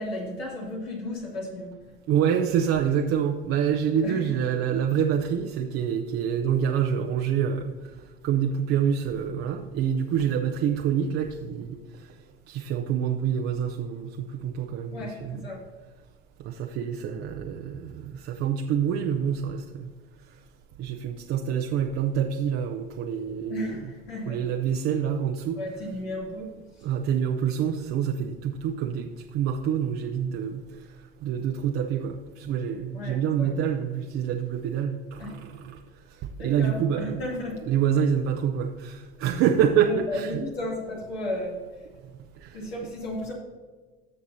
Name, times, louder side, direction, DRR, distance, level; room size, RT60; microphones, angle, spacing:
voice 1, 0.0-1.9 4.0-4.4 14.9-15.6 23.5-24.4 25.6-26.5 32.9-33.5 35.2-35.4 36.4-37.6 39.8-41.6 42.5-43.3, left 1 dB, 90° left, -3 dB, 2.8 m, -34 dB
voice 2, 2.1-7.7 8.2-11.8 12.5-15.5 16.4-19.9 20.8-23.9 24.3-25.6 26.8-30.6 31.2-35.8 36.4-37.2 37.7-40.4 42.4-42.6, right 8 dB, 50° right, 3 dB, 0.7 m, -26 dB
14.5 x 6.0 x 2.7 m, 1.4 s
hypercardioid pair, 75°, 30 cm